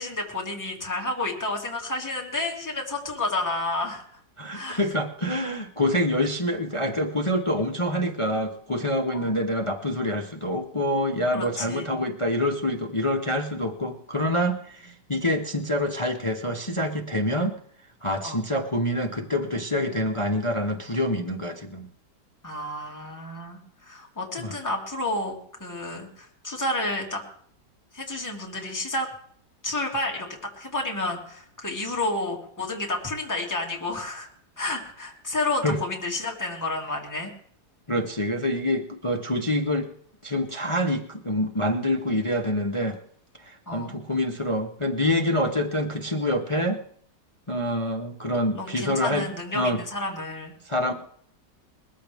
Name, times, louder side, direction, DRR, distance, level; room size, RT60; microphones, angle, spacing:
voice 1, 0.0-4.0 4.5-4.9 9.1-9.4 11.3-12.1 18.2-18.4 22.4-27.2 27.9-29.1 29.6-30.3 30.6-34.3 34.6-37.3 43.7-44.0 48.6-50.5, left 2 dB, 10° left, -1 dB, 2.3 m, -30 dB
voice 2, 4.4-17.6 18.0-21.9 24.4-24.5 35.6-35.8 37.9-39.9 40.2-43.0 43.4-46.8 47.5-49.3 49.5-49.8 50.7-50.9, left 1 dB, 25° left, 3 dB, 0.7 m, -26 dB
21.0 x 14.5 x 3.5 m, 0.62 s
omnidirectional pair, 1.9 m